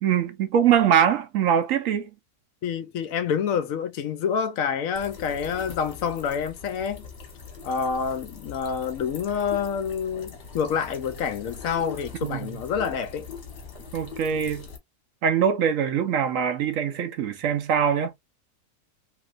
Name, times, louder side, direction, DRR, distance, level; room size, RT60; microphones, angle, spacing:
voice 1, 0.0-2.1 12.2-12.5 13.9-14.7 15.2-18.1, right 8 dB, 65° right, 0.9 m, -23 dB
voice 2, 2.6-7.0 7.6-13.3, left 7 dB, 70° left, 0.9 m, -27 dB
sound 1, 4.9-14.8, left 6 dB, 45° left, 1.2 m, -41 dB
3.1 x 3.0 x 2.4 m
omnidirectional pair, 1.7 m